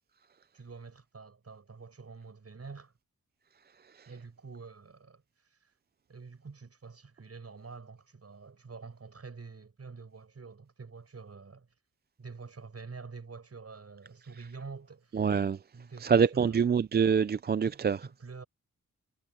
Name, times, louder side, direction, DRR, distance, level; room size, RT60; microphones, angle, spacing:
voice 1, 0.5-2.9 4.1-5.7 6.1-11.7 12.2-15.2 15.7-16.6 17.6-18.4, right 4 dB, 55° right, 6.9 m, -47 dB
voice 2, 15.1-15.6 16.0-18.0, right 6 dB, 35° right, 0.4 m, -25 dB
wide cardioid pair, 85°, 30 cm